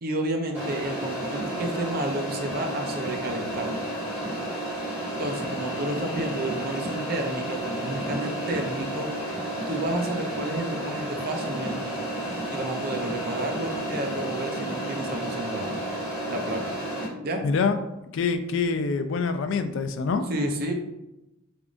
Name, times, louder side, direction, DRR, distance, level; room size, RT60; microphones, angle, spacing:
voice 1, 0.0-3.7 5.2-9.1 9.7-11.9 12.5-15.8 16.3-16.8 17.2-17.4 20.3-20.7, right 1 dB, 45° right, 4 dB, 0.5 m, -31 dB
sound 1, 0.5-17.1, right 1 dB, 10° right, 1.5 m, -31 dB
voice 2, 17.4-17.8 18.1-20.3, left 4 dB, 65° left, 9 dB, 0.3 m, -25 dB
3.7 x 3.5 x 2.5 m, 0.93 s
head